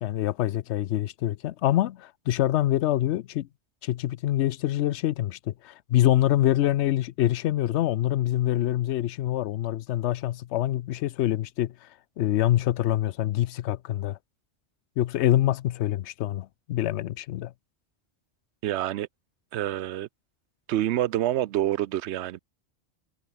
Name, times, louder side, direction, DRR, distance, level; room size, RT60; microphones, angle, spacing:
voice 1, 0.0-3.5 3.8-11.7 12.2-14.2 15.0-17.5, left 13 dB, 90° left, 0.9 m, -25 dB
voice 2, 18.6-19.1 19.5-20.1 20.7-22.4, right 13 dB, 85° right, 0.9 m, -27 dB
omnidirectional pair, 1.1 m